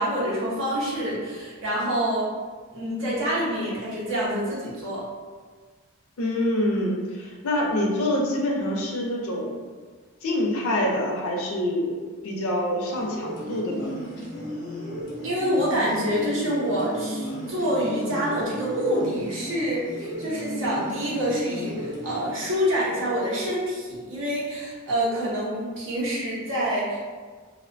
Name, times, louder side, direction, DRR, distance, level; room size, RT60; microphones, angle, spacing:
voice 1, 0.0-2.3 2.7-5.0 15.2-27.0, equal, 60° right, -7 dB, 0.8 m, -27 dB
voice 2, 6.2-9.6 10.2-12.0 12.2-13.9, left 1 dB, 85° left, -1 dB, 0.5 m, -26 dB
sound 1, 13.0-22.3, equal, 50° left, 0.8 m, -34 dB
2.4 x 2.1 x 2.5 m, 1.5 s
head